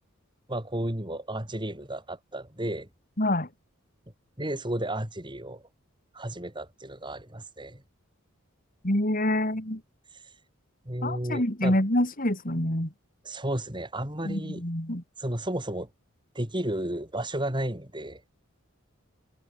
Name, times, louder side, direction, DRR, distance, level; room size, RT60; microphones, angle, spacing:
voice 1, 0.5-2.9 4.4-5.6 6.1-7.8 10.1-10.3 10.9-11.8 13.2-14.6 15.2-15.9 16.4-18.2, right 1 dB, 25° right, 5.2 m, -33 dB
voice 2, 3.2-3.5 8.8-9.8 11.0-12.9 14.2-15.0, left 1 dB, 40° left, 5.1 m, -26 dB
head